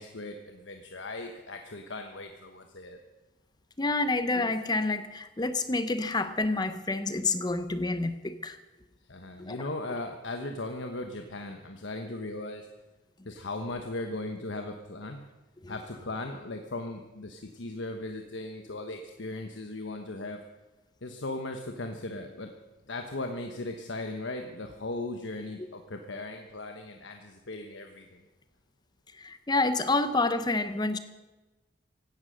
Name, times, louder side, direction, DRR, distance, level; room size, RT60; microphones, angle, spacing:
voice 1, 0.0-3.0 9.1-12.7 13.2-15.2 15.7-20.4 21.0-22.5 22.9-28.2, left 2 dB, 75° left, 5 dB, 1.2 m, -38 dB
voice 2, 3.8-8.6 9.4-9.6 15.6-15.7 25.6-25.7 29.1-31.0, left 3 dB, 20° left, 11 dB, 0.7 m, -28 dB
16.5 x 12.0 x 6.4 m, 1.1 s
head